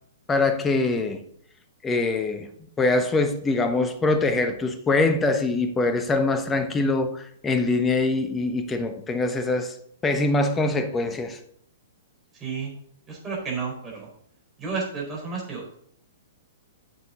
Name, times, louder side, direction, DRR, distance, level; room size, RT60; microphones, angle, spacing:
voice 1, 0.3-1.2 1.8-2.5 2.8-9.8 10.0-11.4, left 3 dB, 15° left, 1.1 m, -23 dB
voice 2, 12.3-12.7 13.1-14.1 14.6-15.8, right 5 dB, 20° right, 4.4 m, -31 dB
9.4 x 7.0 x 3.9 m
figure-of-eight pair, 110°, 0 cm